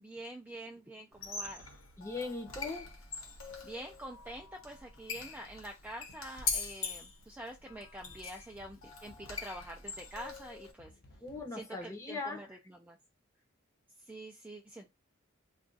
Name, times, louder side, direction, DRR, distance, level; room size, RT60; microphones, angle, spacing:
voice 1, 0.0-1.7 3.6-10.9 11.5-13.0 14.0-14.9, right 1 dB, 10° right, 0.3 m, -46 dB
Squeak, 1.1-10.7, left 5 dB, 75° left, 1.0 m, -42 dB
voice 2, 2.0-2.9 11.2-12.4, left 3 dB, 15° left, 0.7 m, -39 dB
sound 1, 8.1-9.4 10.8-11.6, left 1 dB, 50° left, 0.7 m, -59 dB
2.4 x 2.3 x 3.8 m
head